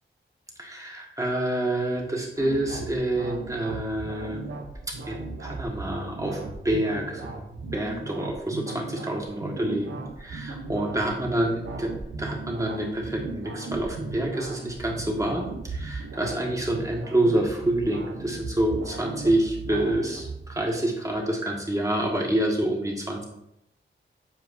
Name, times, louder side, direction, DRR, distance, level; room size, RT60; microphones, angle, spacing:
voice 1, 0.6-4.4 4.9-23.2, right 1 dB, 15° right, -1 dB, 1.4 m, -27 dB
sound 1, 2.4-20.6, right 3 dB, 75° right, 0.8 m, -37 dB
7.6 x 4.7 x 2.6 m, 0.83 s
cardioid pair, 65°, 21 cm